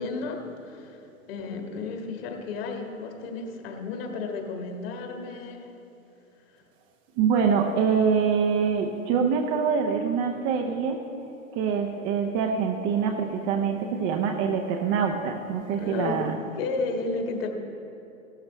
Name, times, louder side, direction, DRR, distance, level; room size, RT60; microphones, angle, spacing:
voice 1, 0.0-5.7 15.7-16.2 16.6-17.5, left 3 dB, 45° left, 3 dB, 1.7 m, -33 dB
voice 2, 7.2-11.0 11.5-16.3, right 6 dB, 25° right, 4 dB, 0.7 m, -25 dB
16.5 x 12.5 x 3.1 m, 2.8 s
figure-of-eight pair, 105°, 41 cm